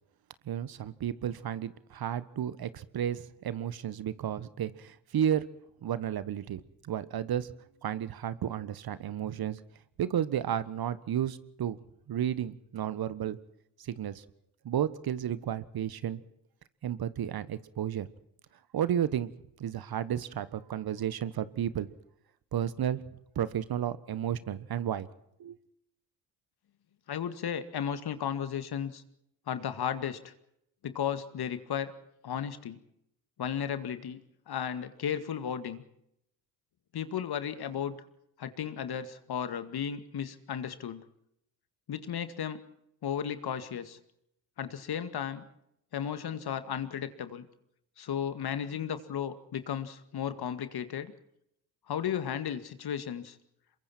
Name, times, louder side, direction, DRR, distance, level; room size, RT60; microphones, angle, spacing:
voice 1, 0.4-5.4 5.8-7.5 7.8-9.6 10.0-11.8 12.1-13.4 13.8-14.2 14.6-16.2 16.8-18.1 18.7-19.3 19.6-21.9 22.5-23.0 23.3-25.1 25.4-25.6, right 10 dB, 45° right, 16 dB, 1.4 m, -32 dB
voice 2, 27.1-29.0 29.5-30.3 30.8-31.9 32.2-32.8 33.4-35.8 36.9-38.0 38.4-41.0 41.9-42.6 43.0-44.0 44.6-45.4 45.9-47.5 48.0-51.1 51.9-53.4, left 8 dB, 50° left, 11 dB, 2.1 m, -34 dB
28.0 x 23.0 x 4.5 m, 0.75 s
hypercardioid pair, 50°, 49 cm